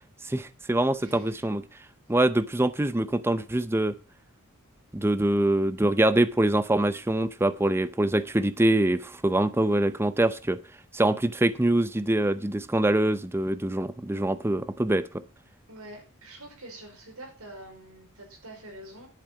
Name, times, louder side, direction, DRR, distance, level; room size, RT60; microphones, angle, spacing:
voice 1, 0.2-1.6 2.1-3.9 4.9-10.6 10.9-15.1, right 1 dB, 10° right, 13 dB, 0.5 m, -24 dB
voice 2, 1.0-1.5 15.7-19.1, right 1 dB, 80° right, 2 dB, 5.1 m, -46 dB
10.5 x 8.7 x 5.7 m, 0.34 s
head